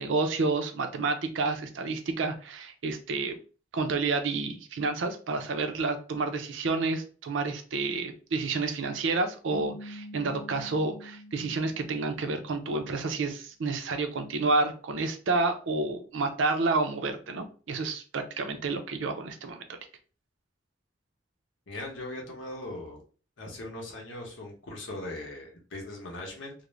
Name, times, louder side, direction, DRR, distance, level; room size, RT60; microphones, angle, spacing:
voice 1, 0.0-3.4 3.7-19.8, right 3 dB, 80° right, 7 dB, 0.5 m, -29 dB
sound 1, 9.5-12.8, left 1 dB, 45° left, 0.6 m, -46 dB
voice 2, 21.7-23.0 23.4-26.5, left 1 dB, 80° left, 0 dB, 0.8 m, -39 dB
2.4 x 2.0 x 3.1 m, 0.37 s
head